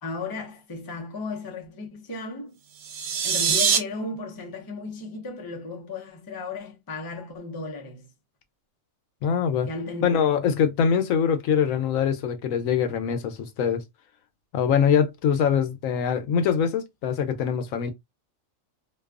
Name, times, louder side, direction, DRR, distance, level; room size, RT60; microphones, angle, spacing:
voice 1, 0.0-2.6 3.2-8.1 9.7-10.0, left 3 dB, 30° left, 0.4 m, -35 dB
sound 1, 2.7-3.8, right 7 dB, 85° right, 1.1 m, -23 dB
voice 2, 9.2-9.7 10.0-13.8 14.5-17.9, left 7 dB, 80° left, 1.0 m, -23 dB
2.7 x 2.3 x 2.3 m
omnidirectional pair, 1.4 m